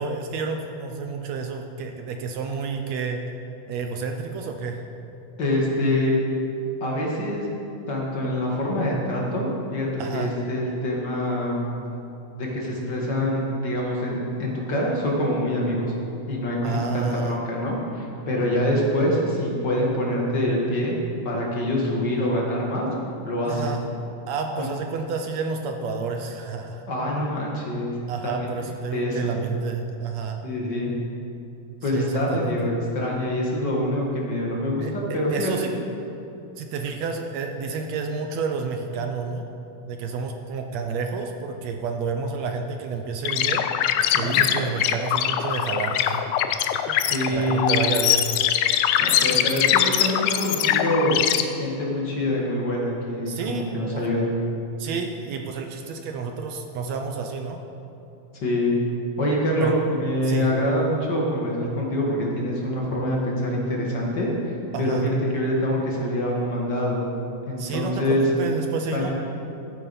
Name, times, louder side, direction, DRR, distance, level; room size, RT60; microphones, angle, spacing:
voice 1, 0.0-3.3 3.7-4.8 10.0-10.4 16.6-17.4 23.4-23.9 24.3-26.8 28.1-30.5 31.9-32.5 34.8-35.7 36.6-39.5 39.9-43.6 44.1-46.2 46.9-47.0 47.3-48.3 53.3-54.1 54.8-57.6 59.6-59.8 60.2-60.5 64.7-65.1 67.6-69.1, right 5 dB, 75° right, 4 dB, 1.6 m, -30 dB
voice 2, 5.4-6.1 6.8-7.5 7.9-11.6 12.4-15.9 16.3-20.9 21.2-22.9 23.2-23.8 24.5-24.7 26.9-27.9 28.2-28.5 28.9-29.4 30.4-30.9 31.8-35.7 44.1-44.4 47.1-47.7 49.0-51.1 51.6-54.3 58.4-58.7 59.2-67.1 67.5-68.3 68.9-69.1, left 1 dB, 40° left, -3 dB, 2.0 m, -25 dB
sound 1, 43.2-51.4, left 11 dB, 80° left, 1.7 m, -22 dB
14.0 x 8.9 x 5.5 m, 2.9 s
omnidirectional pair, 3.8 m